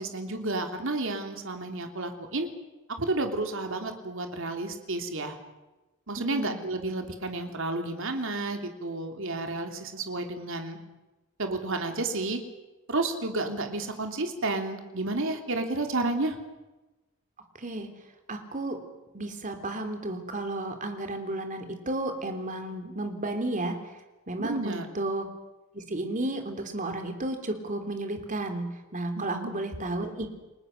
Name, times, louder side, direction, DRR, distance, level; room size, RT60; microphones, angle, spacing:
voice 1, 0.0-2.5 3.0-5.3 6.1-10.8 11.4-12.4 12.9-16.4 24.4-24.8 29.1-29.5, right 2 dB, 65° right, 5 dB, 3.1 m, -31 dB
voice 2, 18.3-18.8 19.1-23.8 24.3-25.3 25.7-30.3, right 2 dB, 40° right, 6 dB, 3.4 m, -32 dB
29.5 x 20.0 x 6.7 m, 1.1 s
head